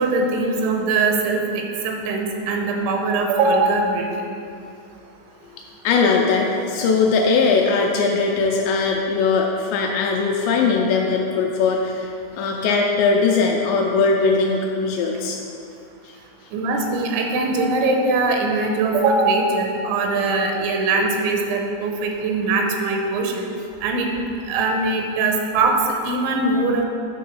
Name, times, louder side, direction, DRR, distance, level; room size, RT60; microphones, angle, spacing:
voice 1, 0.0-1.4 1.8-4.0 16.5-23.5 23.8-24.1 24.5-25.7 26.0-26.8, right 3 dB, 85° right, 2 dB, 3.0 m, -21 dB
voice 2, 5.8-12.1 12.4-15.4 16.0-16.2, left 4 dB, 80° left, 0 dB, 2.6 m, -20 dB
9.3 x 3.7 x 5.6 m, 2.5 s
omnidirectional pair, 5.4 m